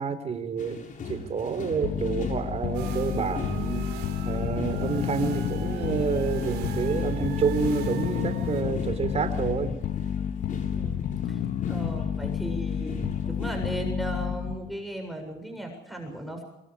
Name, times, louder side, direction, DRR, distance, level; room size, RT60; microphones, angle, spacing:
voice 1, 0.0-3.9 4.3-9.8, right 5 dB, 40° right, 10 dB, 4.1 m, -29 dB
sound 1, 0.6-13.9, left 4 dB, 50° left, 7.2 m, -40 dB
sound 2, 1.8-14.7, left 8 dB, 65° left, 2.3 m, -30 dB
sound 3, 2.7-8.6, right 10 dB, 85° right, 5.2 m, -39 dB
voice 2, 10.8-11.4 11.7-16.4, right 1 dB, ahead, 4 dB, 7.7 m, -36 dB
26.5 x 25.0 x 5.1 m, 0.89 s
cardioid pair, 110°, 17 cm